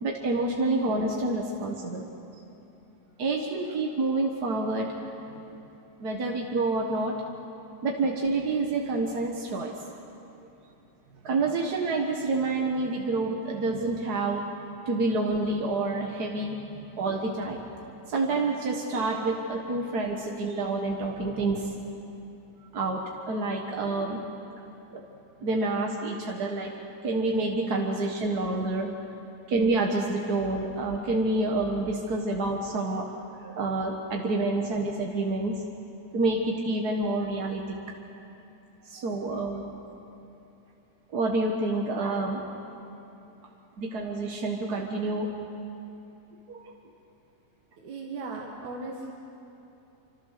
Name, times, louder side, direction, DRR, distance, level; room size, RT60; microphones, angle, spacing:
voice 1, 0.0-2.0 3.2-4.9 6.0-7.1 7.8-9.7 11.2-14.4 14.8-16.6 17.0-17.6 18.1-21.7 22.7-23.0 23.3-24.2 24.9-25.0 25.4-26.7 27.0-28.9 29.5-33.0 33.4-35.6 36.1-37.6 38.8-39.7 41.1-42.4 43.8-45.3 46.5-46.7, right 2 dB, 45° right, 0 dB, 1.4 m, -28 dB
voice 2, 47.8-49.1, right 3 dB, 75° right, -2 dB, 3.2 m, -37 dB
26.0 x 26.0 x 6.7 m, 3.0 s
omnidirectional pair, 3.3 m